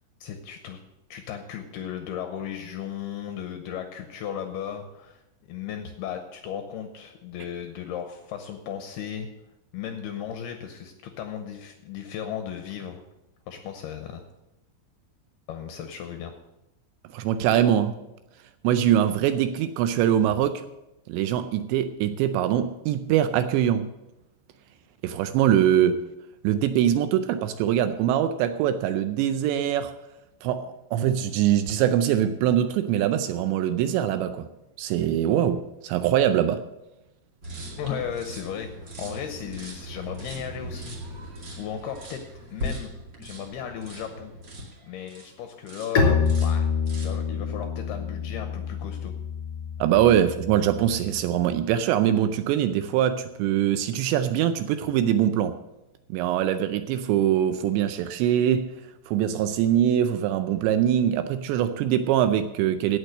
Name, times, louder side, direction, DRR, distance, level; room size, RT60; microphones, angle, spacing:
voice 1, 0.2-0.8 1.1-9.3 9.7-13.0 13.5-14.2 15.5-16.3 37.8-41.0 41.6-42.2 42.5-42.9 43.2-44.3 44.8-49.1, left 8 dB, 80° left, 6 dB, 2.4 m, -36 dB
voice 2, 17.1-18.0 18.6-20.6 21.1-23.9 25.0-26.0 26.4-29.9 30.4-34.5 34.8-36.6 49.8-55.6 56.1-58.7 59.1-63.0, right 10 dB, 80° right, 10 dB, 2.7 m, -23 dB
sound 1, 37.4-45.3 45.7-46.0 46.2-47.2, equal, 35° right, 1.8 m, -39 dB
Bowed string instrument, 45.9-51.5, left 5 dB, 30° left, 2.3 m, -27 dB
16.5 x 6.4 x 6.4 m, 0.94 s
omnidirectional pair, 5.4 m